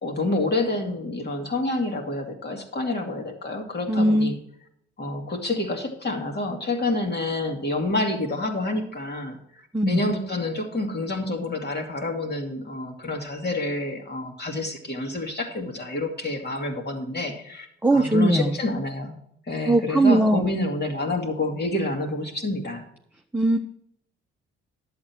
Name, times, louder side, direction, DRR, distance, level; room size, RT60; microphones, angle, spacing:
voice 1, 0.0-4.4 5.0-9.4 9.9-19.2 19.5-22.8, left 2 dB, 35° left, 2 dB, 2.6 m, -28 dB
voice 2, 3.9-4.4 9.7-10.0 17.8-18.6 19.7-20.4 23.3-23.6, right 1 dB, 5° right, 1 dB, 1.1 m, -19 dB
11.0 x 7.9 x 4.6 m, 0.73 s
hypercardioid pair, 50°, 29 cm